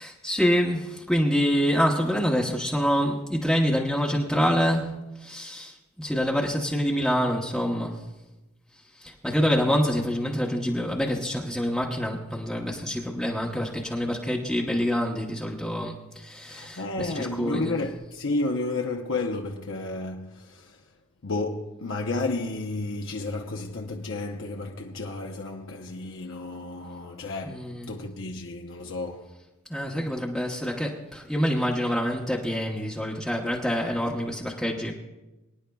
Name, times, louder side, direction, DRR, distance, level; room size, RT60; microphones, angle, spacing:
voice 1, 0.0-8.0 9.0-17.9 27.4-28.0 29.7-34.9, equal, ahead, 0.9 m, -26 dB
voice 2, 16.5-20.8 21.2-29.3, left 2 dB, 65° left, 0.8 m, -32 dB
24.0 x 10.0 x 2.3 m
head